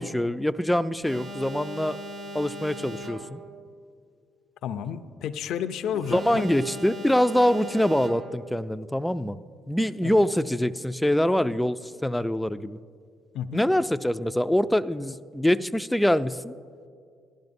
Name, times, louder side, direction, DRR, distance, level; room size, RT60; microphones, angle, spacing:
voice 1, 0.0-2.0 2.3-3.4 6.1-9.4 9.7-12.8 13.5-16.5, left 1 dB, 5° left, 12 dB, 0.4 m, -24 dB
Alarm, 1.0-3.6 6.0-8.6, right 1 dB, 65° right, 1.9 m, -39 dB
voice 2, 4.6-6.5 10.0-10.3 13.3-13.6, left 8 dB, 70° left, 11 dB, 0.5 m, -31 dB
17.0 x 12.0 x 2.7 m, 2.2 s
supercardioid pair, 65°, 0 cm